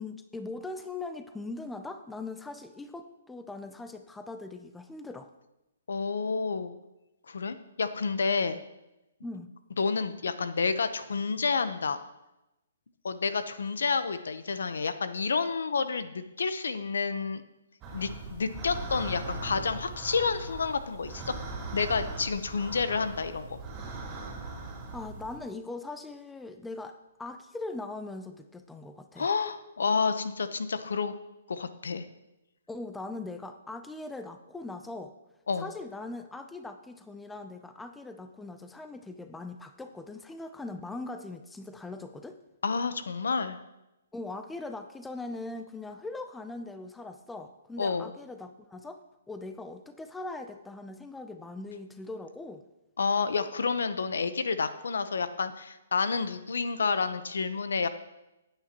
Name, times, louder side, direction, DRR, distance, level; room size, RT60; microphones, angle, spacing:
voice 1, 0.0-5.3 9.2-9.5 24.9-29.3 32.7-35.1 35.6-42.4 44.1-49.0 49.3-52.6, left 2 dB, 5° left, 8 dB, 0.5 m, -40 dB
voice 2, 5.9-6.7 7.3-8.6 9.8-12.0 13.0-17.4 17.9-21.4 21.7-23.6 29.2-31.1 31.5-32.1 35.5-35.7 42.6-43.6 47.8-48.1 53.0-57.9, left 5 dB, 85° left, 11 dB, 0.8 m, -29 dB
sound 1, 17.8-25.4, right 3 dB, 20° right, 3.2 m, -40 dB
16.0 x 8.9 x 3.0 m, 0.95 s
hypercardioid pair, 155°, 0 cm